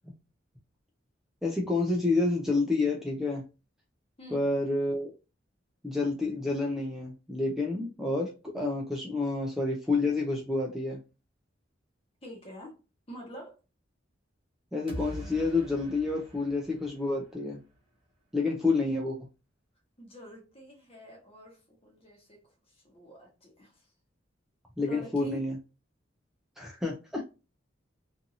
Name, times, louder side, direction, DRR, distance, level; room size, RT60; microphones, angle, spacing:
voice 1, 1.4-3.4 4.3-5.1 5.8-11.0 14.7-17.6 18.3-19.2 24.8-25.6 26.6-27.2, left 3 dB, ahead, 0.4 m, -29 dB
voice 2, 4.2-4.5 12.2-12.8 13.1-13.6 20.0-23.9 24.8-25.4, left 1 dB, 30° left, 1.0 m, -47 dB
sound 1, 14.9-17.8, equal, 30° right, 0.8 m, -44 dB
2.6 x 2.6 x 2.6 m
head